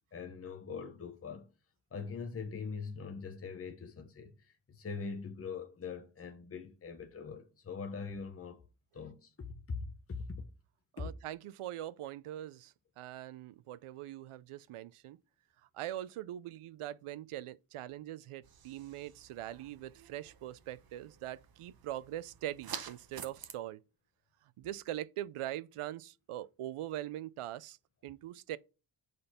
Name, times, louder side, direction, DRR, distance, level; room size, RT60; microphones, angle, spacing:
voice 1, 0.1-1.5 1.9-8.6 8.9-10.4 11.0-11.1, left 5 dB, 30° left, 1.0 m, -42 dB
voice 2, 10.9-15.2 15.7-23.8 24.6-27.8 28.0-28.6, right 13 dB, 85° right, 0.6 m, -42 dB
sound 1, 18.4-23.5, right 8 dB, 50° right, 0.9 m, -49 dB
6.6 x 5.2 x 5.7 m
wide cardioid pair, 165°, 49 cm